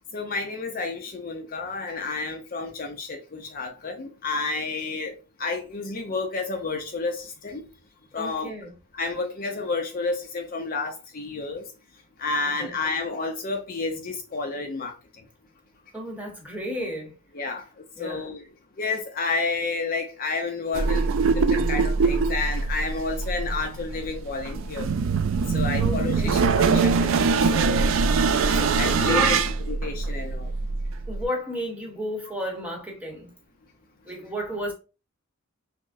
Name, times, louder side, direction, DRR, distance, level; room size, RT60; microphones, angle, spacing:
voice 1, 0.1-5.1 5.4-7.7 8.1-8.5 8.9-11.6 12.2-15.0 17.3-17.6 18.0-18.4 18.8-24.9 25.5-27.9 28.8-29.4 29.7-30.5, left 3 dB, 40° left, 0.5 m, -30 dB
voice 2, 8.1-8.7 12.4-12.8 15.9-17.1 18.0-18.3 25.8-26.5 28.5-29.5 31.1-33.3 34.0-34.7, equal, 5° right, 0.9 m, -33 dB
sound 1, 20.7-31.2, right 4 dB, 60° right, 0.4 m, -23 dB
5.8 x 2.0 x 2.5 m
head